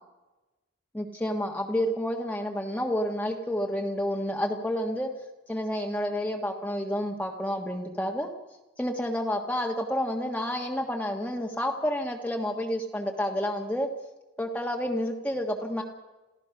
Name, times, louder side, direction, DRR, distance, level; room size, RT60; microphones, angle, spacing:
voice 1, 0.9-5.1 5.5-8.3 8.8-13.9 14.4-15.8, equal, 10° left, 1 dB, 1.5 m, -29 dB
28.5 x 16.0 x 5.9 m, 1.1 s
head